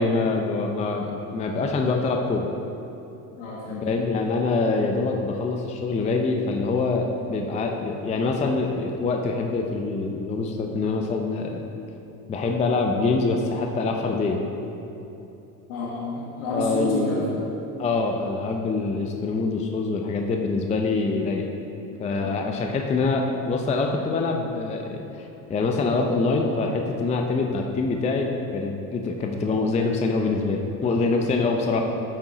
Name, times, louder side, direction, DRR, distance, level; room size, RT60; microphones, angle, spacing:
voice 1, 0.0-2.5 3.8-11.6 12.3-14.4 16.5-17.2 17.8-21.5 22.0-31.8, left 3 dB, 15° left, 3 dB, 0.4 m, -25 dB
voice 2, 3.4-4.1 15.7-17.3 22.2-22.5, left 2 dB, 70° left, -4 dB, 1.5 m, -30 dB
8.7 x 6.0 x 3.9 m, 3.0 s
supercardioid pair, 95°, 44 cm